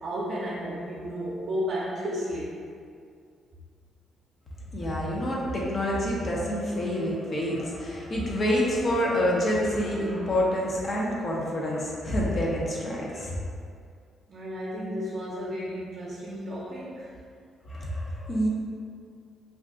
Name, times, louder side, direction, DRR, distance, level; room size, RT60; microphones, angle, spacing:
voice 1, 0.0-2.6 14.3-17.1, equal, 50° right, -7 dB, 0.6 m, -33 dB
voice 2, 4.7-13.3 17.7-18.5, equal, 40° left, -4 dB, 0.6 m, -27 dB
2.4 x 2.2 x 3.6 m, 2.2 s
cardioid pair, 90°, 0 cm